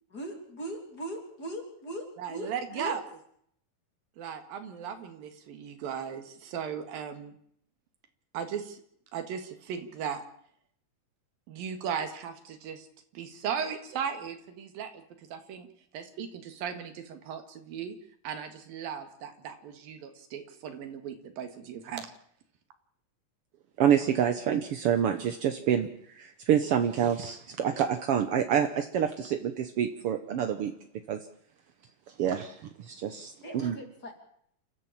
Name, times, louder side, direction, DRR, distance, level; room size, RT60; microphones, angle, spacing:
voice 1, 0.1-3.0 33.4-34.1, right 1 dB, 30° left, 3 dB, 3.7 m, -39 dB
voice 2, 2.2-3.0 4.2-7.4 8.3-8.8 9.1-10.2 11.5-12.9 13.1-15.7 15.9-18.0 18.2-22.1, right 7 dB, 85° right, 7 dB, 3.7 m, -37 dB
voice 3, 23.8-25.9 26.1-30.7 31.1-31.2 32.2-33.3 33.6-33.7, right 9 dB, 70° right, 7 dB, 1.4 m, -27 dB
29.0 x 13.5 x 7.4 m, 0.67 s
omnidirectional pair, 4.0 m